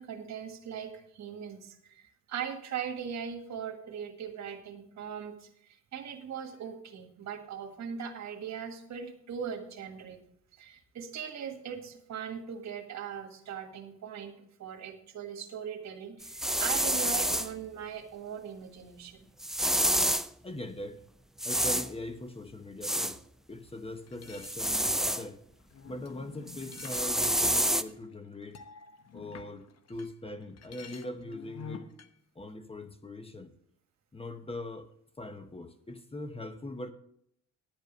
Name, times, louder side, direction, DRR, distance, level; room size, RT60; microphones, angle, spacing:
voice 1, 0.0-10.2 10.5-19.3, right 7 dB, 65° right, 1.8 m, -40 dB
sound 1, 16.2-17.5 19.4-20.3 21.4-21.9 22.8-23.2 24.4-25.2 26.5-27.8, right 1 dB, ahead, 0.5 m, -28 dB
voice 2, 20.4-21.0 21.4-23.2 23.5-25.4 25.9-28.6 29.1-31.9 32.3-33.5 34.1-34.9 35.2-36.9, left 1 dB, 20° left, 1.0 m, -41 dB
sound 2, 24.1-30.1 30.4-32.1, left 6 dB, 55° left, 1.1 m, -48 dB
11.0 x 8.2 x 5.3 m
cardioid pair, 90°, 30 cm